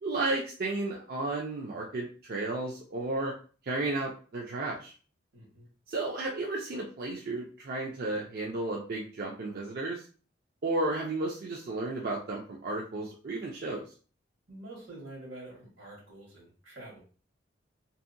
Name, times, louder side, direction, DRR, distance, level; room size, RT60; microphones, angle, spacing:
voice 1, 0.0-3.3 3.6-4.9 5.9-10.0 10.6-13.8, right 2 dB, 50° right, -2 dB, 0.4 m, -33 dB
voice 2, 5.3-5.7 14.5-17.0, right 1 dB, 85° right, -3 dB, 1.3 m, -47 dB
2.7 x 2.1 x 2.5 m, 0.39 s
head